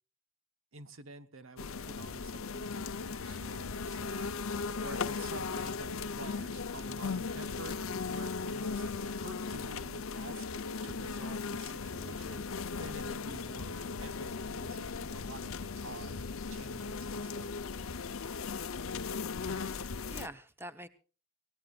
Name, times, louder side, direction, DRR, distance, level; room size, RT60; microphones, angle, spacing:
voice 1, 0.7-4.4 4.8-10.5 10.8-17.5, right 3 dB, 70° right, 11 dB, 1.0 m, -49 dB
sound 1, 1.6-20.3, left 4 dB, 75° left, 0.7 m, -37 dB
voice 2, 19.4-20.9, right 1 dB, 10° right, 11 dB, 0.8 m, -47 dB
24.0 x 18.0 x 2.4 m, 0.37 s
head